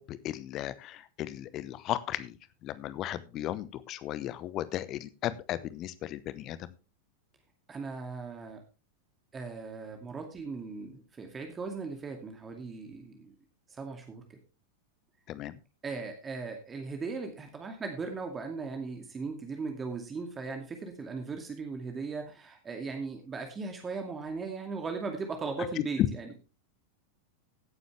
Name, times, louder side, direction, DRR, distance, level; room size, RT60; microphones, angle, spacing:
voice 1, 0.0-2.3 2.6-6.6 15.3-15.5, left 13 dB, 35° left, 16 dB, 0.9 m, -36 dB
voice 2, 7.7-8.6 9.3-13.3 13.7-14.4 15.8-26.3, right 4 dB, 20° right, 4 dB, 2.3 m, -38 dB
16.5 x 9.5 x 3.3 m, 0.31 s
figure-of-eight pair, 90°, 0 cm